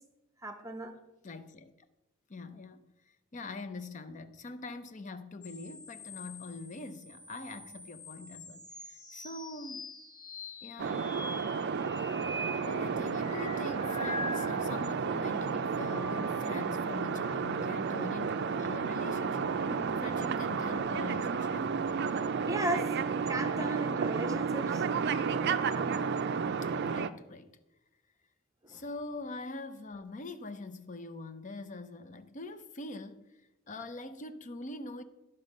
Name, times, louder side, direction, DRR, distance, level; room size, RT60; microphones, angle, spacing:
voice 1, 0.4-0.9 19.7-20.0 22.5-24.8 28.7-28.8, right 1 dB, 15° right, 0.8 m, -36 dB
voice 2, 1.2-1.7 2.3-2.9 3.3-9.9 10.6-11.1 12.6-21.7 26.6-27.5 28.7-33.3 33.7-35.0, left 3 dB, 35° left, 0.6 m, -43 dB
sound 1, 5.4-15.0 15.4-16.8 18.6-19.8, left 1 dB, 20° left, 1.0 m, -45 dB
sound 2, 10.8-27.1, right 5 dB, 55° right, 0.4 m, -32 dB
11.5 x 5.4 x 5.2 m
head